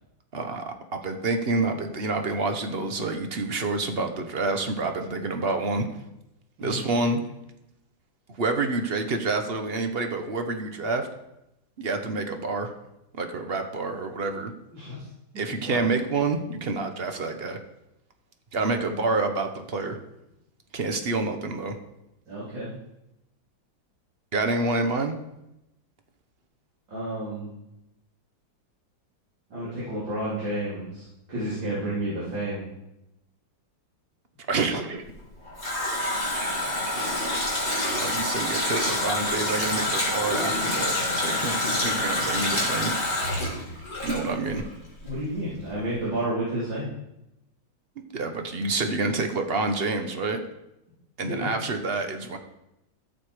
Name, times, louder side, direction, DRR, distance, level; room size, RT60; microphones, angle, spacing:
voice 1, 0.3-5.9 6.6-7.2 8.4-11.1 11.8-12.7 13.1-14.5 15.4-17.6 18.5-20.0 20.7-21.8 24.3-25.1 34.5-35.0 37.2-37.5 38.0-42.9 44.0-44.6 48.1-50.4 51.2-52.4, right 3 dB, 40° right, 6 dB, 1.0 m, -28 dB
voice 2, 15.3-15.9 18.6-18.9 22.3-22.7 26.9-27.5 29.5-32.6 45.0-46.9 51.2-51.5, right 1 dB, 75° right, -10 dB, 4.5 m, -31 dB
Water tap faucet, 35.1-44.7 45.0-45.1, left 1 dB, 25° left, 3.6 m, -27 dB
14.5 x 6.8 x 5.0 m, 0.88 s
omnidirectional pair, 2.0 m